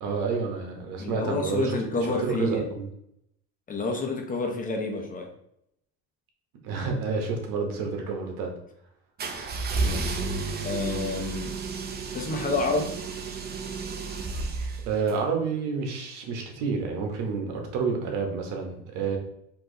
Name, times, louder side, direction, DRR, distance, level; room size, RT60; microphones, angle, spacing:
voice 1, 0.0-2.9 6.6-8.5 14.8-19.2, right 5 dB, 75° right, 2 dB, 1.3 m, -29 dB
voice 2, 1.0-2.7 3.7-5.3 9.3-9.5 9.8-10.1 10.6-11.6 12.1-12.9, left 3 dB, 25° left, 3 dB, 1.0 m, -29 dB
sound 1, 9.2-15.2, right 3 dB, 30° right, 0.7 m, -31 dB
4.6 x 3.0 x 3.9 m, 0.76 s
supercardioid pair, 115°, 32 cm